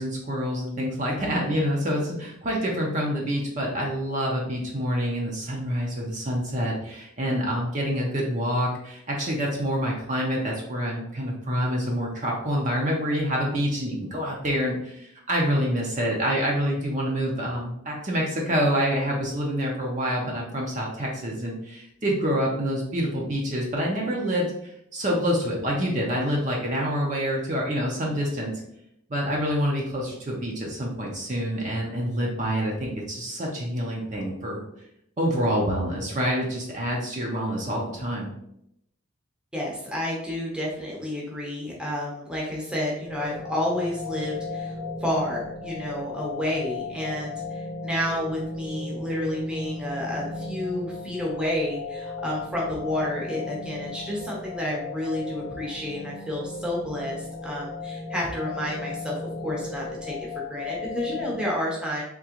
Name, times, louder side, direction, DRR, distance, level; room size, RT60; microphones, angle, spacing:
voice 1, 0.0-28.5 29.1-34.6 35.2-38.3, equal, 35° right, -2 dB, 0.6 m, -27 dB
voice 2, 39.5-44.8 45.0-59.1 59.4-62.0, left 1 dB, 5° right, -4 dB, 0.8 m, -30 dB
sound 1, 43.1-61.5, left 3 dB, 40° left, 0.5 m, -36 dB
3.6 x 2.9 x 2.9 m, 0.78 s
head